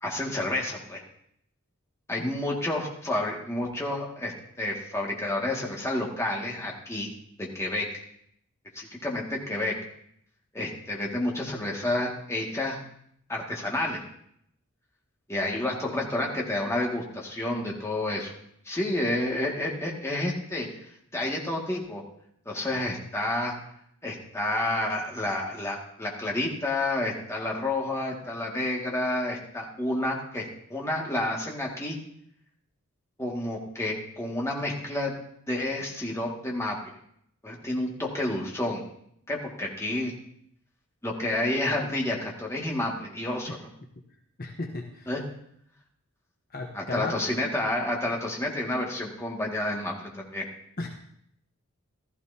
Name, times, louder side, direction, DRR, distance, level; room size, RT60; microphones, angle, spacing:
voice 1, 0.0-1.0 2.1-4.3 4.6-7.1 7.4-7.9 8.7-9.7 10.5-12.8 13.3-14.0 15.3-18.3 18.7-20.7 21.1-22.0 22.5-23.5 24.0-32.0 33.2-35.2 35.5-36.8 37.4-38.8 39.3-40.1 41.0-43.6 45.1-45.2 46.7-50.4, left 1 dB, 10° left, -2 dB, 2.1 m, -30 dB
voice 2, 44.4-45.2 46.5-47.3 50.8-50.9, left 2 dB, 40° left, 2 dB, 1.0 m, -35 dB
15.5 x 13.5 x 2.8 m, 0.70 s
head